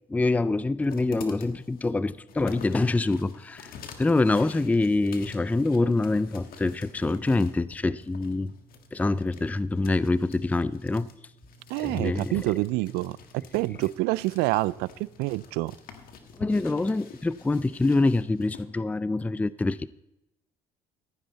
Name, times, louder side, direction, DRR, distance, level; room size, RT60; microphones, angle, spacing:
voice 1, 0.1-3.7 4.0-8.5 8.9-11.1 11.8-12.3 16.4-19.9, left 2 dB, 10° left, 0.4 m, -25 dB
sound 1, 0.8-18.6, left 5 dB, 65° left, 1.6 m, -48 dB
voice 2, 11.7-14.9 15.2-15.7, right 19 dB, 80° right, 0.4 m, -27 dB
14.5 x 9.7 x 4.1 m
supercardioid pair, 75°, 16 cm